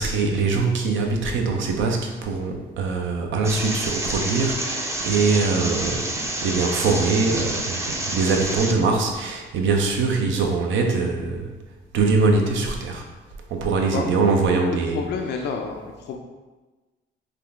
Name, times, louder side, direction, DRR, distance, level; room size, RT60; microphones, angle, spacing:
voice 1, 0.0-6.1 6.4-11.5 11.9-13.0 13.5-15.0, right 4 dB, 75° right, 2 dB, 0.6 m, -22 dB
sound 1, 3.4-8.7, right 1 dB, 15° right, 0.5 m, -28 dB
voice 2, 14.9-16.2, left 5 dB, 60° left, 3 dB, 0.4 m, -29 dB
3.7 x 2.3 x 3.4 m, 1.2 s
cardioid pair, 90°, 20 cm